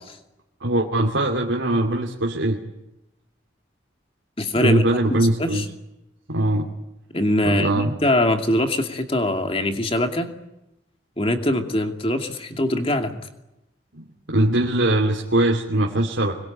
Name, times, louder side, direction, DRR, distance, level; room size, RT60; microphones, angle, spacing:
voice 1, 0.6-2.6 4.6-5.6 6.3-6.7 7.4-7.9 14.0-16.3, right 1 dB, 80° right, -1 dB, 2.7 m, -21 dB
voice 2, 4.4-4.8 5.1-5.6 7.1-10.3 11.2-13.3, left 1 dB, 30° left, 5 dB, 2.6 m, -23 dB
25.5 x 22.0 x 9.1 m, 0.92 s
head